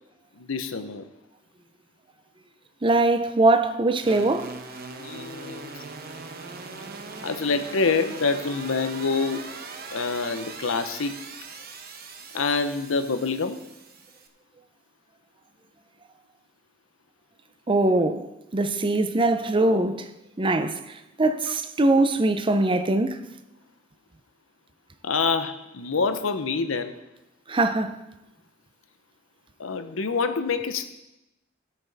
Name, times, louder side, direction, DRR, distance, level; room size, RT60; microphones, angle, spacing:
voice 1, 0.4-1.1 4.9-5.7 7.2-9.5 9.9-11.2 12.3-13.6 25.0-26.9 29.6-30.9, left 4 dB, 85° left, 0.8 m, -26 dB
voice 2, 2.8-4.6 17.7-20.1 20.4-23.2 27.5-28.0, right 2 dB, 25° right, 0.6 m, -22 dB
sound 1, 4.0-14.3, right 4 dB, 50° right, 0.9 m, -40 dB
16.5 x 6.1 x 4.1 m
head